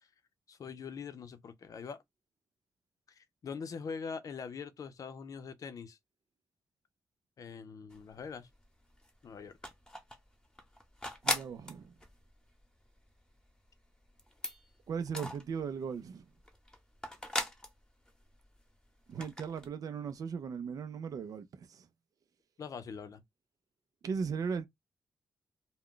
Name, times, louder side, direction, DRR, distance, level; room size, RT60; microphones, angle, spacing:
voice 1, 0.5-2.0 3.1-6.0 7.4-8.5 9.2-9.5 22.6-23.2, left 6 dB, 65° left, 0.5 m, -43 dB
sound 1, 7.9-8.6 8.9-16.0 16.3-18.7 19.0-19.7, left 1 dB, 10° left, 0.9 m, -39 dB
voice 2, 11.2-11.9 14.9-16.3 19.1-21.9 24.0-24.7, right 6 dB, 70° right, 0.4 m, -37 dB
2.3 x 2.1 x 3.6 m
cardioid pair, 70°, 6 cm